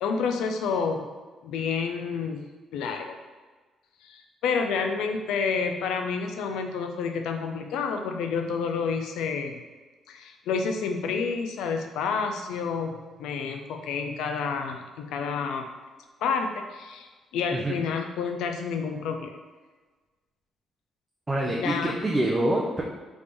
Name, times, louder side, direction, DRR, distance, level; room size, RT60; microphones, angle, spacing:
voice 1, 0.0-1.1 1.4-2.4 2.7-3.2 4.0-9.6 10.1-15.7 16.2-19.4 21.5-22.0, left 5 dB, 90° left, 5 dB, 0.4 m, -29 dB
voice 2, 21.3-22.8, right 1 dB, 20° right, -2 dB, 0.4 m, -26 dB
3.4 x 2.5 x 3.4 m, 1.3 s
cardioid pair, 90°, 0 cm